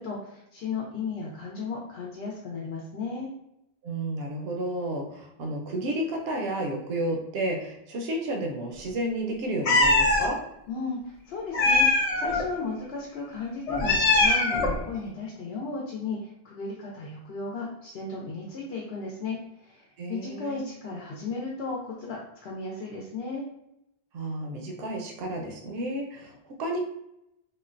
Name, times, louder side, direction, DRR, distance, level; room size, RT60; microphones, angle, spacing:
voice 1, 0.0-3.3 10.7-23.4, left 4 dB, 80° left, -2 dB, 0.9 m, -35 dB
voice 2, 3.8-10.4 20.0-20.6 24.1-26.8, right 1 dB, 75° right, 2 dB, 0.8 m, -31 dB
Meow, 9.6-10.3 11.5-12.4 13.7-14.8, left 2 dB, 50° left, 0.4 m, -22 dB
3.7 x 2.1 x 2.4 m, 0.82 s
omnidirectional pair, 1.0 m